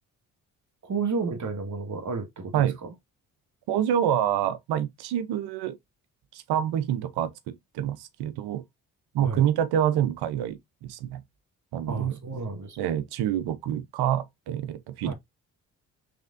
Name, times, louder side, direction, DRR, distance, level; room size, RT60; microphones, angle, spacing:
voice 1, 0.8-2.9 9.2-9.4 11.9-12.8 15.1-15.2, right 4 dB, 45° right, 1.9 m, -32 dB
voice 2, 3.7-5.8 6.3-8.6 9.1-11.2 11.7-12.2 12.8-15.1, right 10 dB, 75° right, 0.8 m, -27 dB
4.9 x 3.5 x 2.5 m
hypercardioid pair, 50°, 39 cm